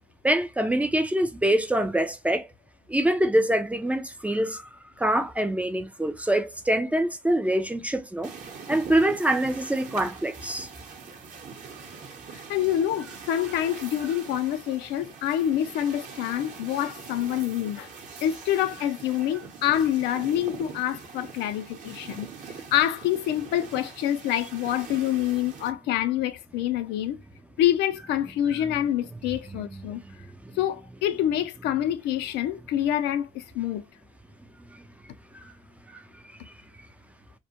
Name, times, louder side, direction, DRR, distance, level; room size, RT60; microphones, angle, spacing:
voice 1, 0.2-2.5 2.9-8.3 8.7-10.7 29.5-29.8 34.7-34.8 35.4-35.5 35.9-36.0 36.5-36.6, right 1 dB, 10° right, 0.3 m, -25 dB
sound 1, 8.2-25.7, right 5 dB, 50° right, 0.8 m, -43 dB
voice 2, 12.3-17.9 18.2-27.2 27.6-30.0 30.6-33.8, left 11 dB, 85° left, 0.4 m, -26 dB
2.2 x 2.0 x 2.8 m
cardioid pair, 110°, 17 cm